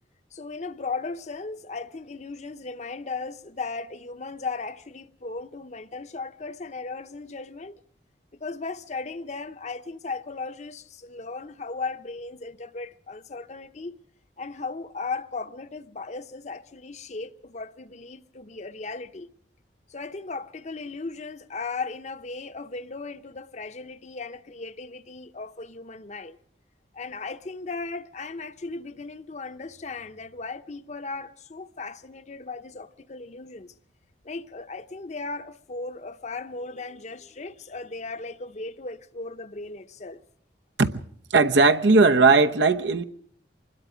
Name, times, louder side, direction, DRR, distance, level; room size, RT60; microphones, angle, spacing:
voice 1, 0.3-7.8 8.4-14.0 14.4-19.3 19.9-26.4 26.9-33.7 34.2-40.2, left 3 dB, 40° left, 0.7 m, -36 dB
voice 2, 41.3-43.0, right 3 dB, 85° right, 0.9 m, -18 dB
25.0 x 21.0 x 5.0 m
head